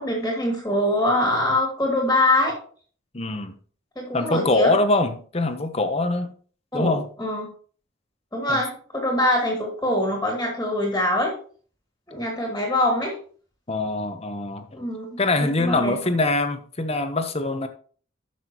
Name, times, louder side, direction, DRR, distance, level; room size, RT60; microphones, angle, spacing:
voice 1, 0.0-2.6 4.0-4.8 6.7-7.5 8.3-11.3 12.1-13.2 14.7-15.2 15.6-15.9, left 1 dB, 15° left, 0 dB, 2.4 m, -23 dB
voice 2, 3.1-3.5 4.1-6.3 6.7-7.1 8.5-8.6 13.7-14.7 15.2-17.7, left 2 dB, 30° left, 8 dB, 0.9 m, -23 dB
13.0 x 5.9 x 3.0 m, 0.44 s
head